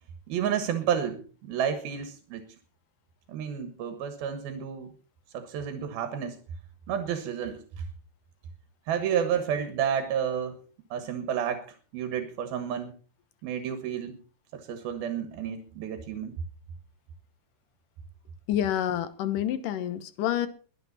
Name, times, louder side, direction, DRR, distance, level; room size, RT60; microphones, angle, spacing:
voice 1, 0.3-2.4 3.3-4.9 5.3-6.4 6.9-7.8 8.9-10.6 10.9-11.7 11.9-12.9 13.4-14.2 14.5-16.4, right 8 dB, 90° right, 9 dB, 3.3 m, -30 dB
voice 2, 18.5-20.5, left 11 dB, 70° left, 13 dB, 2.6 m, -28 dB
22.5 x 9.2 x 4.1 m, 0.37 s
omnidirectional pair, 4.2 m